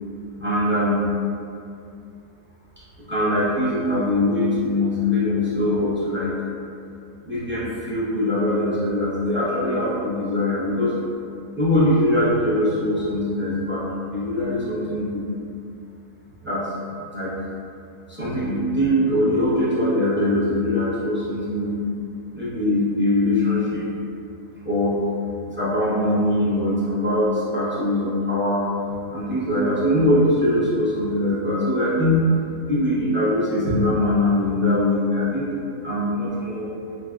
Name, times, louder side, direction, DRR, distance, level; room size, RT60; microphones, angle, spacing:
voice 1, 0.4-1.0 3.1-6.3 7.2-10.9 11.6-13.8 14.1-15.2 16.4-16.7 17.1-17.3 18.1-21.8 22.3-23.9 24.6-25.0 25.5-28.7 29.1-32.2 32.7-36.7, left 1 dB, 15° right, -11 dB, 0.5 m, -22 dB
6.2 x 2.2 x 2.4 m, 2.5 s
omnidirectional pair, 1.7 m